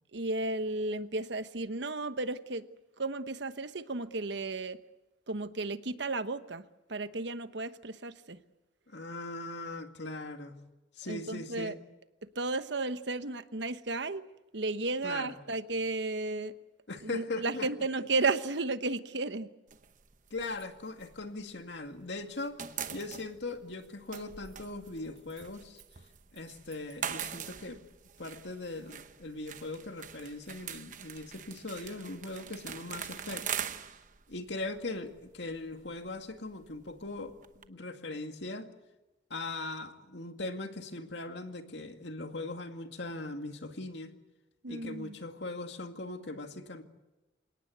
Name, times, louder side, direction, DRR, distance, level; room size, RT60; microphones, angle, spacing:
voice 1, 0.1-2.7 3.0-4.8 5.3-8.4 11.1-11.7 12.3-14.2 14.5-16.5 17.0-19.5 44.6-45.2, right 3 dB, 70° right, 11 dB, 1.1 m, -33 dB
voice 2, 8.9-10.6 11.0-11.8 15.0-15.3 16.9-17.7 20.3-25.8 26.3-27.8 28.2-33.5 34.3-38.7 39.3-44.1 44.7-46.8, left 2 dB, 70° left, 6 dB, 2.2 m, -40 dB
sound 1, 19.7-21.9 22.2-37.7, right 8 dB, 40° right, 1.0 m, -43 dB
28.0 x 18.0 x 8.1 m, 1.1 s
head